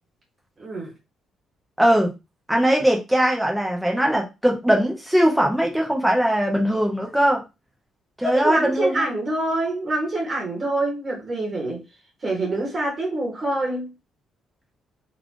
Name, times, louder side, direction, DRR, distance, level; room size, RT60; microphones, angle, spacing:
voice 1, 0.6-0.9 8.2-11.8 12.2-13.9, right 2 dB, 25° right, 2.1 m, -26 dB
voice 2, 1.8-2.1 2.5-7.4 8.2-9.0, equal, ahead, 1.0 m, -20 dB
4.2 x 3.3 x 3.2 m
cardioid pair, 160°, 0 cm